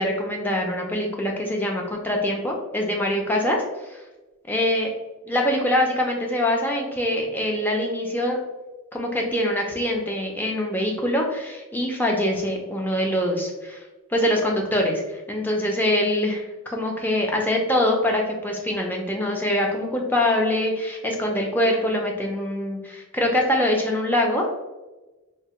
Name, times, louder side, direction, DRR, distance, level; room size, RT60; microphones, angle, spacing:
voice 1, 0.0-4.0 4.5-4.9 5.3-8.4 8.9-13.8 14.1-24.4, left 1 dB, 10° left, 0 dB, 0.4 m, -24 dB
3.2 x 2.0 x 2.9 m, 1.1 s
head